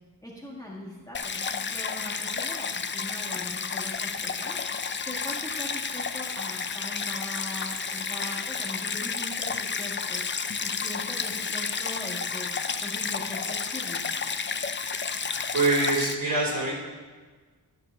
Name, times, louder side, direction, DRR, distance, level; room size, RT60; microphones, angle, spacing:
voice 1, 0.2-14.0, left 1 dB, 10° left, -4 dB, 1.5 m, -41 dB
Stream, 1.1-16.1, left 5 dB, 30° left, 0.4 m, -31 dB
voice 2, 15.5-16.7, right 2 dB, 50° right, -5 dB, 3.8 m, -24 dB
13.0 x 4.8 x 6.5 m, 1.4 s
wide cardioid pair, 120°, 42 cm